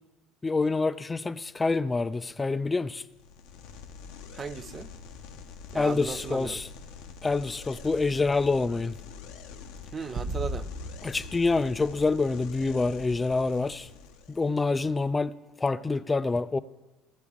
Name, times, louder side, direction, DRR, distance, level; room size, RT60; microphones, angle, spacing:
voice 1, 0.4-3.0 5.7-6.7 7.2-8.9 11.0-13.9 14.3-16.6, left 3 dB, 20° left, 0.5 m, -27 dB
sound 1, 3.1-14.5, left 5 dB, 70° left, 0.8 m, -45 dB
voice 2, 4.3-4.9 5.7-6.6 9.9-10.7, right 5 dB, 30° right, 0.5 m, -36 dB
sound 2, 10.2-12.6, right 2 dB, 45° right, 1.0 m, -37 dB
15.5 x 8.2 x 3.7 m
hypercardioid pair, 70°, 0 cm